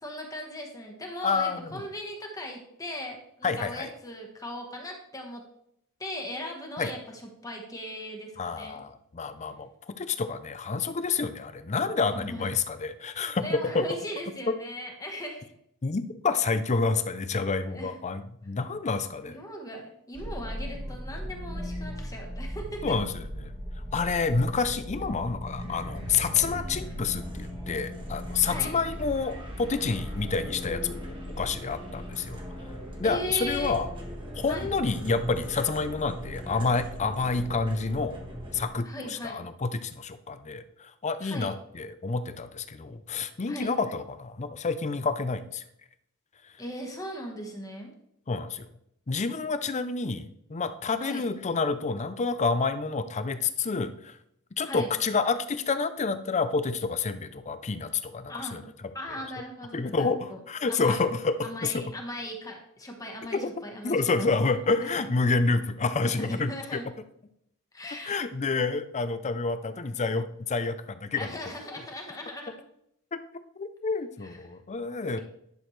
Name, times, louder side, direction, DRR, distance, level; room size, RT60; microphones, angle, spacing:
voice 1, 0.0-5.4 6.0-8.8 12.1-12.5 13.4-15.5 17.7-18.0 19.3-23.0 28.4-28.7 33.0-33.7 34.5-34.7 38.8-39.4 41.2-41.5 43.5-43.7 46.6-47.9 51.0-51.2 54.6-54.9 58.3-58.6 58.9-60.4 60.7-61.0 61.4-64.5 64.8-65.0 66.2-66.8 67.7-68.2 71.1-72.5 74.2-74.4, equal, 15° left, 2 dB, 1.3 m, -38 dB
voice 2, 1.2-1.8 3.4-3.9 6.8-6.9 8.4-13.9 14.5-14.6 15.8-19.4 22.8-23.5 23.9-32.4 33.0-33.9 34.4-38.2 38.5-45.6 48.3-48.7 49.1-54.2 54.6-58.6 59.7-61.8 63.3-63.5 63.8-66.8 68.0-71.3 73.1-73.2 73.6-75.2, left 4 dB, 30° left, 11 dB, 0.5 m, -29 dB
sound 1, 20.2-38.7, equal, 20° right, 1.4 m, -38 dB
10.5 x 6.3 x 3.2 m, 0.75 s
head